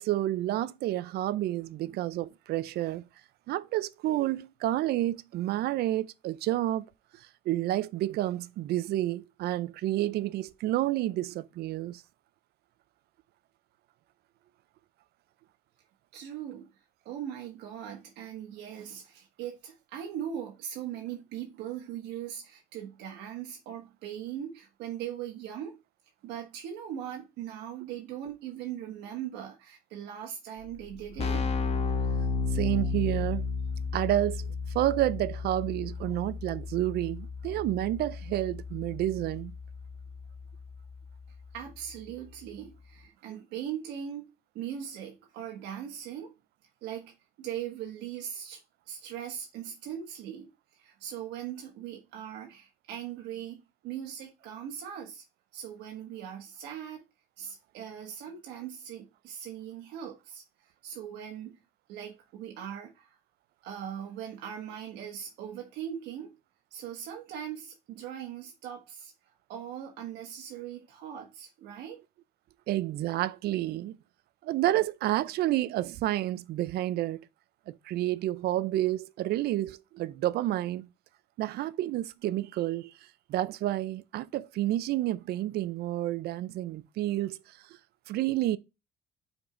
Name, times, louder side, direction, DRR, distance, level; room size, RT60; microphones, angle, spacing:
voice 1, 0.0-3.1 3.5-6.9 7.2-12.0 32.5-33.5 33.9-39.6 72.7-74.0 74.4-77.2 77.7-80.9 81.4-82.9 83.3-87.6 88.1-88.6, right 14 dB, 70° right, 0.5 m, -30 dB
voice 2, 16.1-16.7 17.0-25.8 26.2-31.5 41.5-44.3 44.5-46.3 46.8-48.6 48.9-55.2 55.5-57.0 57.4-60.4 60.8-61.6 61.9-63.2 63.6-66.3 66.7-69.1 69.5-72.0, right 9 dB, 85° right, 1.4 m, -40 dB
Keyboard (musical), 30.6-30.7 30.9-41.5, left 4 dB, 35° left, 1.2 m, -33 dB
5.5 x 4.5 x 5.1 m
cardioid pair, 110°, 17 cm